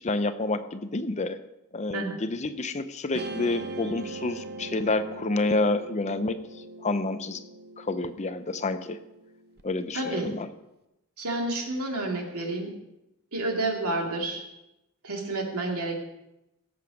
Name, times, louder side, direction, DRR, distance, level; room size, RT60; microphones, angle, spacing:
voice 1, 0.0-1.4 1.7-6.4 6.8-7.4 7.8-9.0 9.6-10.5, left 2 dB, 30° left, 11 dB, 0.6 m, -29 dB
Guitar, 3.1-9.6, right 2 dB, 45° right, 0.7 m, -41 dB
voice 2, 9.9-10.3 11.2-12.7 13.3-14.4 15.0-16.0, right 2 dB, 90° right, 1 dB, 2.4 m, -30 dB
17.0 x 7.8 x 5.1 m, 0.92 s
head